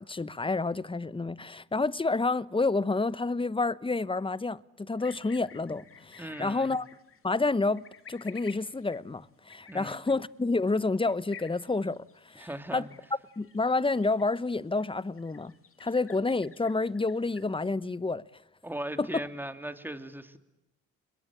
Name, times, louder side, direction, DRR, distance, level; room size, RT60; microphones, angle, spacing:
voice 1, 0.0-6.9 7.2-12.5 12.7-12.9 13.4-15.5 15.8-18.2 19.0-19.1, left 3 dB, 15° left, 1.1 m, -29 dB
sound 1, 5.0-17.6, left 7 dB, 45° left, 2.7 m, -53 dB
voice 2, 6.2-6.7 9.7-10.0 12.3-12.9 18.6-20.4, right 1 dB, 5° right, 2.7 m, -38 dB
29.5 x 22.0 x 8.9 m
supercardioid pair, 60°, 30 cm